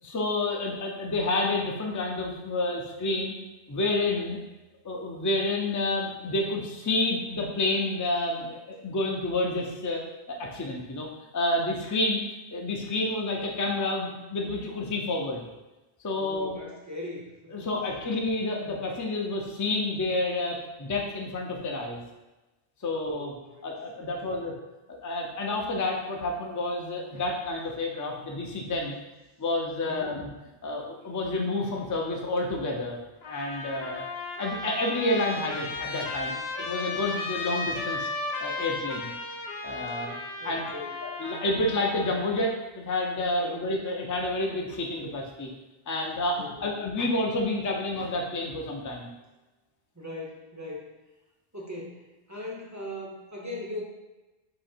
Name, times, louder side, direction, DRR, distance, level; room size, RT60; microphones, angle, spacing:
voice 1, 0.0-3.3 3.7-4.4 4.8-10.0 10.3-11.1 11.3-12.2 12.5-15.4 16.0-16.6 17.5-22.0 22.8-23.3 23.6-24.5 24.9-29.0 29.4-30.3 30.6-33.0 33.3-34.1 34.4-38.1 38.4-39.1 39.6-40.2 40.4-40.6 41.0-45.5 45.9-49.1, left 2 dB, 25° left, 0 dB, 0.4 m, -29 dB
voice 2, 16.2-17.8 22.9-23.7 24.0-24.5 29.8-30.1 40.4-41.0 43.4-43.7 46.4-46.7 49.9-50.9 51.5-53.8, left 1 dB, 20° right, -3 dB, 0.6 m, -40 dB
Trumpet, 33.2-42.4, left 3 dB, 75° left, 1.0 m, -35 dB
3.8 x 2.8 x 4.3 m, 1.1 s
omnidirectional pair, 1.1 m